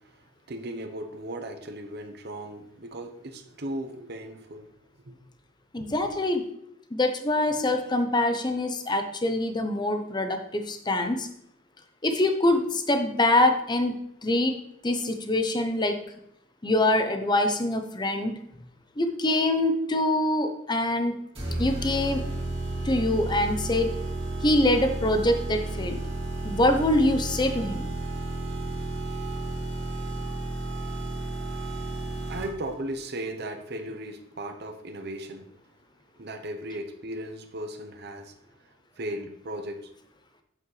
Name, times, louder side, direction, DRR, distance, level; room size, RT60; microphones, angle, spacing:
voice 1, 0.5-4.7 5.0-5.1 5.8-6.0 31.7-31.8 32.3-35.5 36.2-38.3 39.0-39.9, right 1 dB, 55° right, 6 dB, 0.9 m, -36 dB
voice 2, 5.7-6.5 6.9-11.3 12.0-14.0 14.2-16.0 16.6-18.3 19.0-21.2 21.6-22.3 22.8-23.9 24.4-26.0 26.4-27.9, left 1 dB, 20° left, 7 dB, 0.7 m, -24 dB
sound 1, 21.4-32.7, right 2 dB, 30° right, 2.5 m, -32 dB
8.5 x 7.2 x 3.2 m, 0.74 s
head